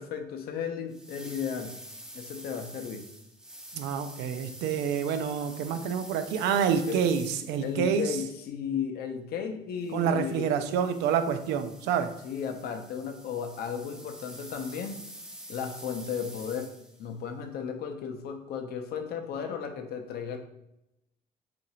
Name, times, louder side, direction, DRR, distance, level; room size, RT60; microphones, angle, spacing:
voice 1, 0.0-1.8 2.1-3.0 6.9-7.3 7.6-10.5 12.2-15.0 15.5-16.7 17.0-20.4, left 7 dB, 65° left, 5 dB, 0.6 m, -35 dB
sound 1, 0.9-7.9 9.8-17.1, equal, 5° right, 0.4 m, -47 dB
voice 2, 3.7-8.2 9.9-12.1, right 7 dB, 85° right, 8 dB, 0.4 m, -28 dB
2.8 x 2.5 x 4.2 m, 0.83 s
cardioid pair, 110°, 17 cm